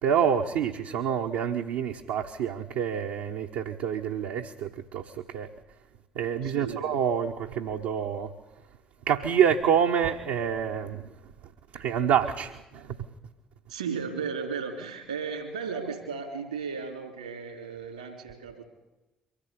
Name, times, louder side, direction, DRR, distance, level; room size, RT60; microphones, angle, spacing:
voice 1, 0.0-5.5 6.1-8.3 9.1-11.1 11.7-13.0, right 8 dB, 65° right, 1.0 m, -27 dB
voice 2, 6.4-6.8 13.7-18.6, right 5 dB, 80° right, 3.3 m, -35 dB
24.0 x 15.0 x 8.5 m
figure-of-eight pair, 45°, 4 cm